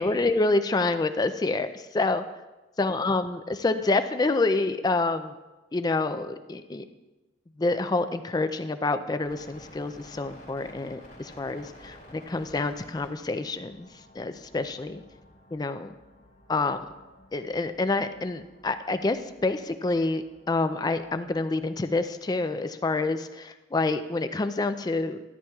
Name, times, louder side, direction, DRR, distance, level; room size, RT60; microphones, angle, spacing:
voice 1, 0.0-2.2 2.8-5.3 5.7-6.8 7.6-13.9 14.1-15.0 15.5-15.9 16.5-16.8 17.3-25.2, left 3 dB, 20° left, 10 dB, 0.3 m, -27 dB
sound 1, 9.2-22.2, left 1 dB, 50° left, 2.9 m, -53 dB
13.5 x 8.6 x 2.3 m, 1.1 s
head